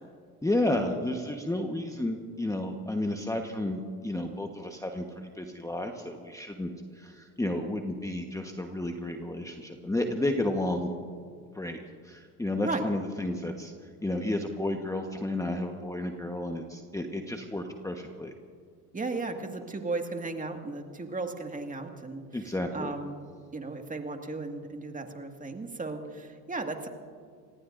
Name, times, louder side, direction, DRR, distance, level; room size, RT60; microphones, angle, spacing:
voice 1, 0.4-10.9 11.5-13.7 14.0-18.3 22.3-22.9, left 1 dB, 5° left, 3 dB, 1.3 m, -32 dB
voice 2, 12.5-12.8 18.9-22.2 22.7-23.2 23.5-26.9, right 3 dB, 15° right, 4 dB, 2.0 m, -35 dB
26.5 x 19.5 x 2.6 m, 2.1 s
hypercardioid pair, 80°, 47 cm